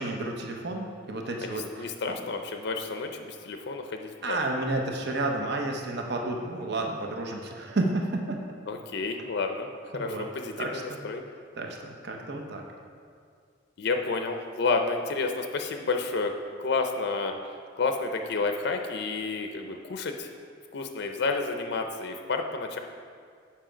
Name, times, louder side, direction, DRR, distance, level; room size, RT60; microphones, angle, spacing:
voice 1, 0.0-2.2 4.2-8.4 9.9-10.3 10.6-11.0 11.5-12.6, right 2 dB, 60° right, 2 dB, 0.8 m, -31 dB
voice 2, 1.4-4.4 8.7-11.2 13.8-17.4 17.8-20.3 20.7-22.8, left 4 dB, 60° left, 5 dB, 0.5 m, -30 dB
7.4 x 5.6 x 5.0 m, 2.2 s
head